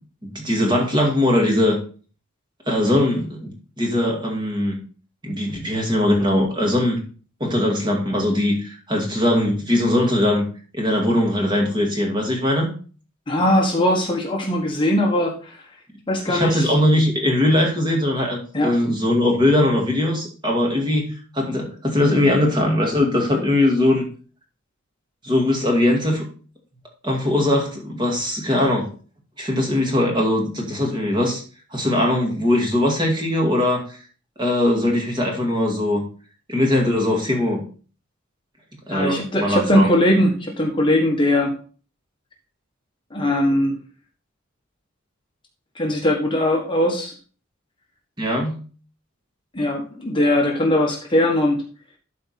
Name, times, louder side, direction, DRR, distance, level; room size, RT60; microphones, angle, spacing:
voice 1, 0.2-1.8 2.7-3.5 3.8-4.8 5.2-7.0 7.4-10.4 10.7-12.7 16.3-21.1 21.3-24.0 25.2-26.2 27.0-28.9 29.4-31.4 31.7-34.0 34.4-36.0 36.5-37.6 38.9-39.9 48.2-48.6, left 1 dB, 20° right, 0 dB, 2.2 m, -20 dB
voice 2, 13.3-15.6 16.1-16.7 18.5-18.7 38.9-41.5 43.1-43.8 45.7-47.1 49.5-51.6, left 1 dB, 25° left, 0 dB, 1.4 m, -20 dB
12.5 x 4.3 x 4.3 m, 0.40 s
head